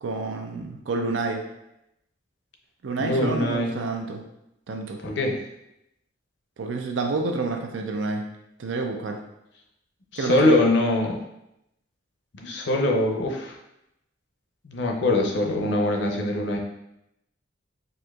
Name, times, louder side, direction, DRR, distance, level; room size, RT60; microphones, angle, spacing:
voice 1, 0.0-1.4 2.8-4.2 4.7-5.0 6.6-8.2 8.6-9.2 10.2-10.6, right 3 dB, 80° right, 4 dB, 0.5 m, -28 dB
voice 2, 3.0-3.7 5.0-5.4 10.1-11.2 12.3-13.6 14.6-16.6, left 1 dB, 65° left, 2 dB, 0.5 m, -23 dB
4.2 x 2.6 x 2.3 m, 0.84 s
head